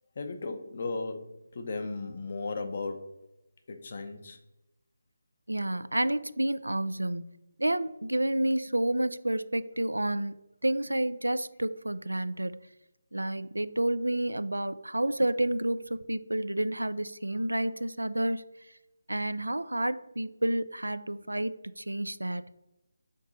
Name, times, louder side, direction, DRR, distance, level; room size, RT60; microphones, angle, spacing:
voice 1, 0.1-3.2 3.7-4.4, left 3 dB, 45° left, 7 dB, 0.8 m, -36 dB
voice 2, 5.5-7.3 7.6-10.3 10.6-12.6 13.1-18.5 19.1-22.4, right 1 dB, 90° right, 14 dB, 0.4 m, -30 dB
5.2 x 3.7 x 5.4 m, 0.95 s
figure-of-eight pair, 155°, 0 cm